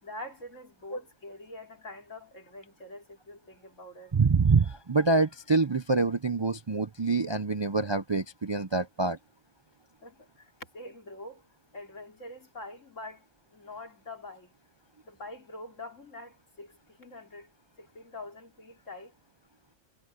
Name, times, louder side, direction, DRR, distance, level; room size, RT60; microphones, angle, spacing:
voice 1, 0.0-4.1 10.0-11.4 11.7-13.2 13.5-14.5 15.0-17.5 17.8-19.1, left 2 dB, 80° left, 4.4 m, -45 dB
voice 2, 4.1-9.2, right 4 dB, 35° right, 0.4 m, -26 dB
omnidirectional pair, 1.3 m